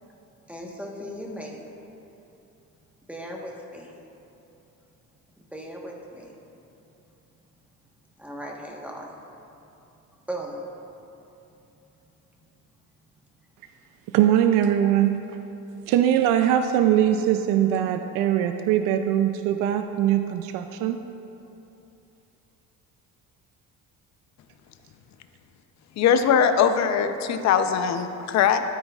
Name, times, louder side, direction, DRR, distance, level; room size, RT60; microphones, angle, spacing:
voice 1, 0.5-1.7 3.1-3.9 5.5-6.3 8.2-9.1 10.3-10.6, equal, 5° right, -1 dB, 1.2 m, -37 dB
voice 2, 14.1-15.2 15.9-21.0, right 10 dB, 80° right, 7 dB, 0.5 m, -21 dB
voice 3, 26.0-28.6, left 7 dB, 55° left, 8 dB, 0.7 m, -21 dB
13.0 x 8.9 x 2.4 m, 2.9 s
cardioid pair, 105°, 32 cm